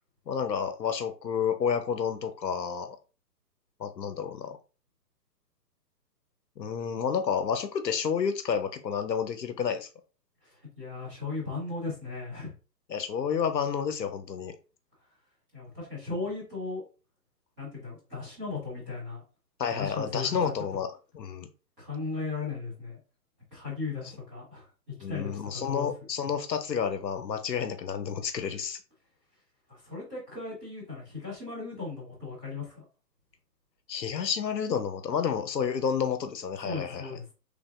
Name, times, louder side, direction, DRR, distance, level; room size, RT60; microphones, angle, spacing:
voice 1, 0.3-3.0 3.8-4.6 6.6-9.9 12.9-14.6 19.6-20.9 21.1-21.5 25.0-28.8 33.9-37.2, left 7 dB, 85° left, 0.7 m, -30 dB
voice 2, 10.4-12.5 15.5-16.9 17.6-19.2 19.7-20.5 21.8-23.0 23.5-24.6 25.1-25.9 29.7-32.8 36.6-37.2, left 4 dB, 5° right, 0.5 m, -36 dB
3.2 x 2.6 x 2.4 m
figure-of-eight pair, 135°, 49 cm